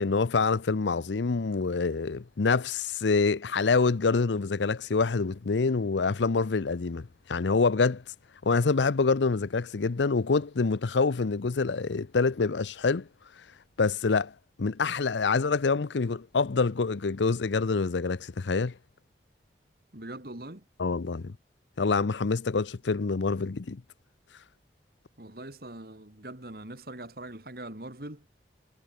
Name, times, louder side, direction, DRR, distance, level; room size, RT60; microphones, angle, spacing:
voice 1, 0.0-8.0 8.4-13.1 13.8-14.3 14.6-18.7 20.8-21.3 21.8-23.8, left 4 dB, 85° left, 0.6 m, -26 dB
voice 2, 19.9-20.7 25.2-28.3, right 1 dB, 55° right, 2.4 m, -42 dB
head